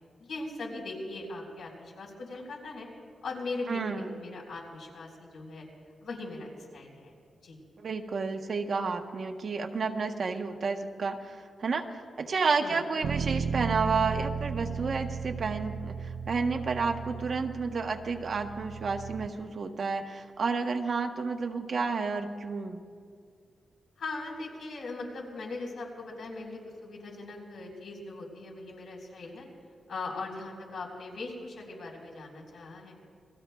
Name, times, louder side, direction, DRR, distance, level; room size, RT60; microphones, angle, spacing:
voice 1, 0.2-2.9 3.2-5.7 6.0-7.1 7.4-7.6 12.6-12.8 24.0-29.5 29.9-32.9, left 3 dB, 80° left, -1 dB, 4.3 m, -40 dB
voice 2, 3.7-4.2 7.8-11.9 12.2-22.8, right 4 dB, 45° right, 4 dB, 1.0 m, -31 dB
Bass guitar, 13.0-19.3, right 6 dB, 70° right, 0.4 m, -35 dB
28.5 x 21.0 x 2.3 m, 2.1 s
wide cardioid pair, 155°, 0 cm